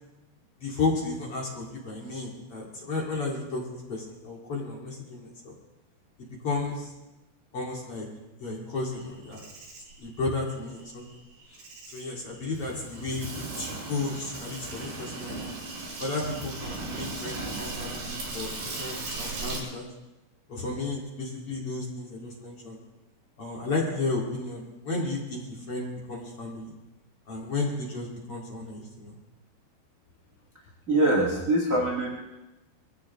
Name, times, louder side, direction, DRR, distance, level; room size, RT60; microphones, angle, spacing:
voice 1, 0.6-5.5 6.2-6.9 7.5-8.1 8.4-9.5 10.0-11.1 11.5-11.6 11.9-15.5 16.0-19.9 20.5-22.8 23.4-26.7 27.3-29.2, left 3 dB, 40° left, -3 dB, 2.8 m, -33 dB
Insect, 8.9-19.6, right 3 dB, 80° right, 8.7 m, -37 dB
voice 2, 30.9-32.2, right 1 dB, 35° right, -2 dB, 1.3 m, -23 dB
22.0 x 15.5 x 3.6 m, 1.0 s
omnidirectional pair, 4.9 m